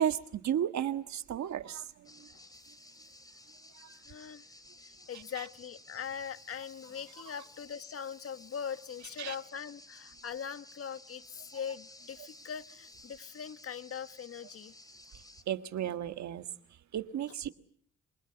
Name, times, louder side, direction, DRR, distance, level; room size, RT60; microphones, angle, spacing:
voice 1, 0.0-2.3 3.8-3.9 5.1-5.5 9.2-9.4 15.5-16.5 16.9-17.5, right 10 dB, 65° right, 1.6 m, -34 dB
sound 1, 2.0-15.4, left 1 dB, 10° left, 3.4 m, -55 dB
voice 2, 4.1-4.4 5.1-11.2 11.5-14.7, left 7 dB, 50° left, 1.3 m, -41 dB
27.0 x 23.0 x 8.0 m
cardioid pair, 90°, 30 cm